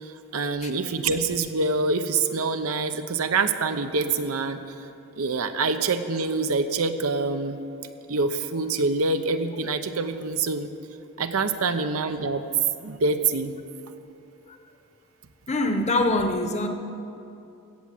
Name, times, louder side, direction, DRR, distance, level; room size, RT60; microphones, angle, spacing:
voice 1, 0.0-4.6 5.2-7.6 8.1-10.7 11.2-12.4 12.8-13.6, right 3 dB, 80° right, 9 dB, 0.8 m, -25 dB
voice 2, 15.5-16.7, left 2 dB, 30° left, 6 dB, 0.9 m, -24 dB
16.0 x 7.3 x 7.7 m, 2.8 s
head